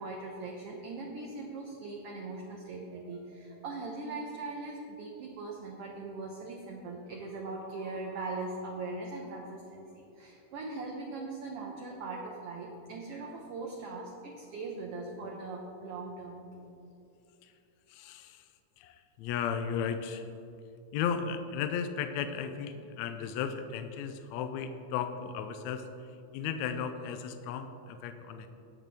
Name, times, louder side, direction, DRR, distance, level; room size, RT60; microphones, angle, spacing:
voice 1, 0.0-16.7, right 3 dB, 65° right, 0 dB, 1.6 m, -40 dB
voice 2, 17.9-18.4 18.8-20.3 20.9-25.9 26.3-28.5, left 7 dB, 80° left, 8 dB, 1.8 m, -35 dB
19.5 x 6.5 x 3.5 m, 2.7 s
omnidirectional pair, 3.3 m